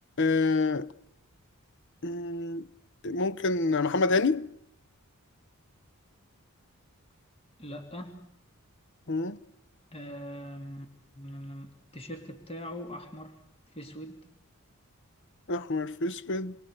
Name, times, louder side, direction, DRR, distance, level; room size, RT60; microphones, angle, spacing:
voice 1, 0.2-0.9 2.0-2.7 3.0-4.5 9.1-9.4 15.5-16.5, left 3 dB, 55° left, 0.9 m, -27 dB
voice 2, 7.6-8.3 9.9-10.9 11.2-13.3 13.7-14.2, equal, 25° left, 2.7 m, -41 dB
29.0 x 23.5 x 6.6 m
head